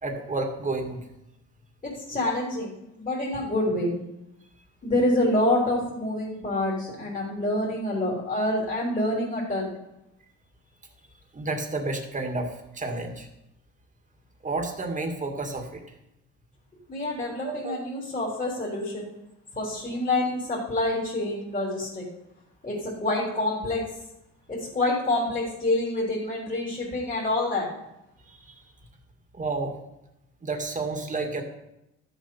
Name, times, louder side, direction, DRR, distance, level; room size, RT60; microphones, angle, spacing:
voice 1, 0.0-1.0 11.3-13.3 14.4-15.8 17.4-17.8 28.3-28.5 29.3-29.8 30.4-31.4, right 3 dB, 25° right, 3 dB, 2.2 m, -31 dB
voice 2, 1.8-3.9 4.8-9.7 16.9-19.1 19.6-22.1 22.6-23.8 24.5-27.7, left 1 dB, 25° left, -5 dB, 3.7 m, -27 dB
12.5 x 7.2 x 5.6 m, 0.88 s
cardioid pair, 90°, 30 cm